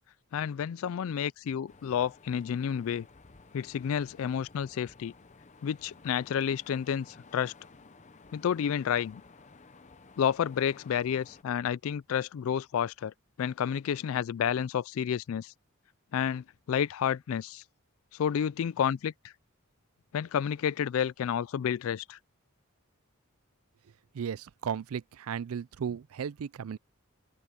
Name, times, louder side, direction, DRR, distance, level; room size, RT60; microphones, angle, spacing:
voice 1, 0.3-3.1 3.5-5.1 5.6-7.5 8.3-9.2 10.2-15.5 16.1-17.6 18.1-19.3 20.1-22.2, left 8 dB, 70° left, 0.3 m, -30 dB
sound 1, 1.7-11.4, left 3 dB, 30° left, 0.7 m, -55 dB
voice 2, 24.1-26.8, right 7 dB, 80° right, 0.4 m, -35 dB
head